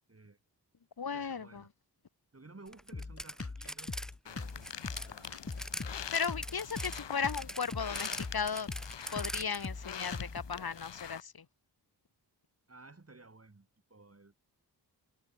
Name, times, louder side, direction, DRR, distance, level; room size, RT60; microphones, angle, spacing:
voice 1, 0.1-0.4 1.1-1.7 2.3-3.9 4.2-5.6 6.8-7.0 12.7-14.4, right 3 dB, 35° right, 5.4 m, -56 dB
voice 2, 1.0-1.6 6.1-8.7 9.1-11.3, left 6 dB, 60° left, 1.9 m, -36 dB
sound 1, 2.7-4.1 4.4-5.9 6.1-9.7, equal, ahead, 3.5 m, -42 dB
Drum kit, 2.9-10.6, left 3 dB, 35° left, 2.4 m, -41 dB
sound 2, 4.3-11.2, left 8 dB, 85° left, 1.4 m, -45 dB
wide cardioid pair, 65°, 42 cm